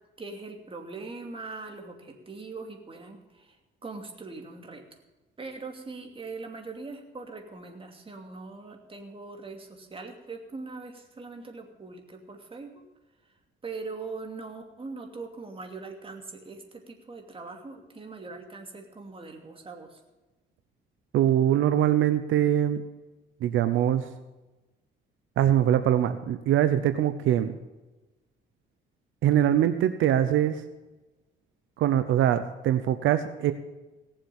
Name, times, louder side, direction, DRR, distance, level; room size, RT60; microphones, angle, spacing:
voice 1, 0.2-3.6 3.8-4.8 5.4-12.7 13.6-20.0, right 3 dB, 25° right, 3 dB, 2.7 m, -41 dB
voice 2, 21.1-22.8 23.4-24.1 25.4-27.5 29.2-30.6 31.8-33.5, right 11 dB, 80° right, 10 dB, 0.8 m, -23 dB
17.5 x 7.4 x 7.1 m, 1.1 s
cardioid pair, 90°, 20 cm